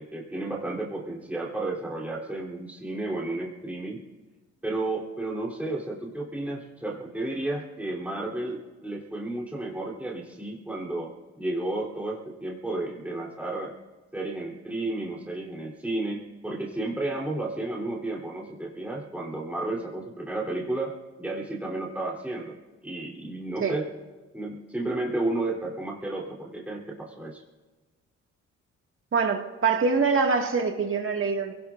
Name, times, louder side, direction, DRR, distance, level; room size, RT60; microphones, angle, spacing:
voice 1, 0.0-4.0 4.6-13.7 14.1-20.9 21.2-22.6 22.8-23.9 24.3-27.4, right 2 dB, 5° right, -3 dB, 3.4 m, -32 dB
voice 2, 29.1-31.5, right 5 dB, 45° right, 4 dB, 1.9 m, -24 dB
27.5 x 18.0 x 2.5 m, 1.3 s
cardioid pair, 90°, 30 cm